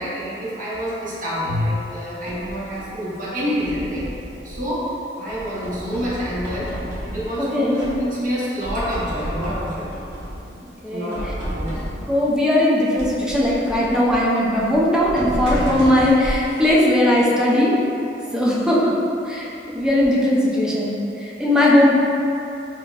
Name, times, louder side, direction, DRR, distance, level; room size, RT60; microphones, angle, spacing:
voice 1, 0.0-4.1 4.4-4.9 5.2-6.7 7.0-9.9 10.9-11.8, equal, 50° right, -9 dB, 1.1 m, -27 dB
sound 1, 1.8-3.0 3.5-4.9 5.3-7.4 7.8-8.3 8.6-10.6 11.1-12.2 13.0-17.5, equal, 70° right, 1.1 m, -32 dB
voice 2, 7.4-7.8 10.8-11.2 12.1-17.7 18.2-18.9 19.2-21.9, left 1 dB, 5° right, -6 dB, 0.6 m, -19 dB
5.8 x 2.9 x 2.4 m, 2.9 s
head